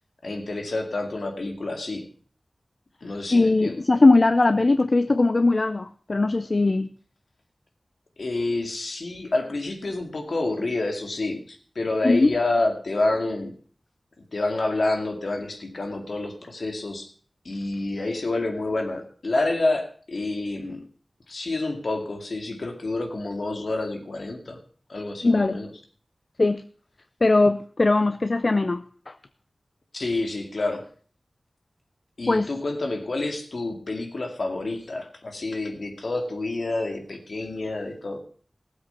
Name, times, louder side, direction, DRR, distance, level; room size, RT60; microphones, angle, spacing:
voice 1, 0.2-2.0 3.0-3.8 8.2-13.5 14.3-17.1 17.4-20.8 21.3-24.6 24.9-25.7 29.9-30.8 32.2-38.2, left 2 dB, 80° left, 2.3 m, -28 dB
voice 2, 3.3-6.9 12.0-12.3 25.2-25.6 26.4-26.6 27.2-29.1 32.3-32.5, left 2 dB, 55° left, 0.5 m, -20 dB
15.5 x 8.0 x 5.7 m
wide cardioid pair, 50°, 0 cm